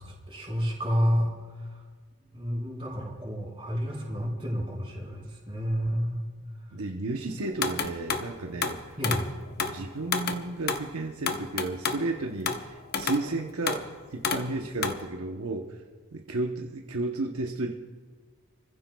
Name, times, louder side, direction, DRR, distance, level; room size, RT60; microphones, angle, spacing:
voice 1, 0.0-1.8 2.3-6.2 9.0-9.2, equal, 25° right, -4 dB, 4.4 m, -30 dB
voice 2, 6.7-9.0 9.6-15.8 16.1-17.7, right 2 dB, 70° right, 2 dB, 0.8 m, -33 dB
sound 1, 7.6-8.3 8.6-9.3 9.6-9.8 10.1-10.9 11.3-12.1 12.4-12.7 12.9-13.3 13.7-13.9 14.2-14.5 14.8-15.1, left 5 dB, 45° left, 0.8 m, -30 dB
29.5 x 15.0 x 2.3 m, 1.5 s
head